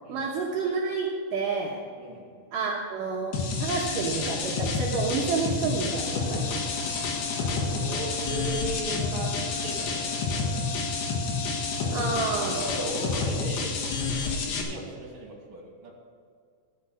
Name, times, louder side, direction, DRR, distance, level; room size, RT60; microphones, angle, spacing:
voice 1, 0.1-1.8 2.5-6.5 11.9-12.6, right 4 dB, 65° right, -2 dB, 2.4 m, -29 dB
voice 2, 2.0-2.3 7.8-10.7 12.0-12.1 12.4-13.8 14.2-15.9, right 2 dB, 40° right, -2 dB, 3.0 m, -37 dB
sound 1, 3.3-14.6, left 4 dB, 70° left, 3.3 m, -29 dB
sound 2, 5.9-12.9, left 3 dB, 45° left, 1.8 m, -40 dB
14.0 x 6.7 x 6.3 m, 2.2 s
omnidirectional pair, 4.7 m